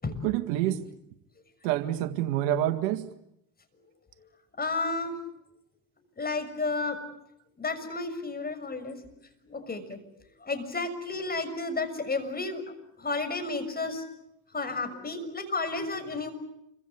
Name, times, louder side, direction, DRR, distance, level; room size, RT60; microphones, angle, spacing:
voice 1, 0.2-0.8 1.6-3.1, right 12 dB, 75° right, 2.0 m, -27 dB
voice 2, 4.6-5.2 6.2-7.0 7.6-9.0 9.4-10.0 10.4-12.6 13.0-14.0 14.5-16.3, left 3 dB, 20° left, 6.3 m, -32 dB
28.0 x 24.5 x 8.4 m
supercardioid pair, 85°, 41 cm